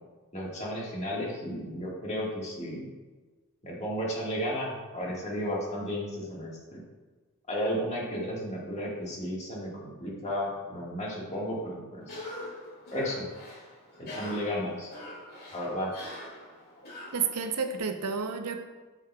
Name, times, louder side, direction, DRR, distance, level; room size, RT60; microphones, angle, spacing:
voice 1, 0.3-2.9 3.6-6.8 7.5-12.2 12.9-13.3 14.0-14.9 15.5-15.9, equal, 30° left, -3 dB, 1.5 m, -33 dB
Cough, 12.0-17.8, left 1 dB, 45° left, 1.9 m, -44 dB
voice 2, 17.1-18.6, right 6 dB, 85° right, 7 dB, 0.6 m, -30 dB
8.3 x 6.3 x 2.2 m, 1.3 s
head